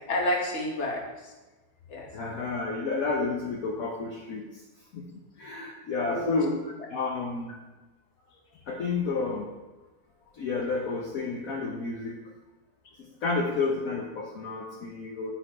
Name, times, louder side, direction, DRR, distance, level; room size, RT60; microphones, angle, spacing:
voice 1, 0.1-1.3 1.9-2.1 6.0-6.7, left 1 dB, 45° left, 0 dB, 1.5 m, -30 dB
voice 2, 2.1-4.6 4.9-5.1 5.4-7.5 8.7-9.5 10.3-12.2 13.0-15.3, left 3 dB, 65° left, -2 dB, 1.2 m, -31 dB
9.0 x 4.0 x 4.7 m, 1.2 s
omnidirectional pair, 1.7 m